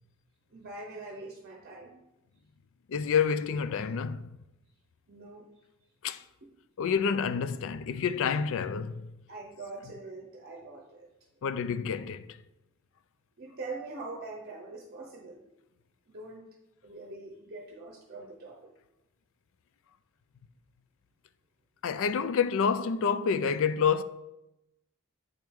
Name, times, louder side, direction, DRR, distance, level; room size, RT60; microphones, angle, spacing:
voice 1, 0.5-2.0 5.1-5.5 9.3-11.1 13.4-15.4 16.1-16.4 16.8-18.7, right 3 dB, 45° right, 0.7 m, -43 dB
voice 2, 2.9-4.3 6.0-6.2 6.8-9.1 11.4-12.3 21.8-24.0, left 6 dB, 65° left, 0.4 m, -28 dB
7.6 x 4.6 x 3.6 m
head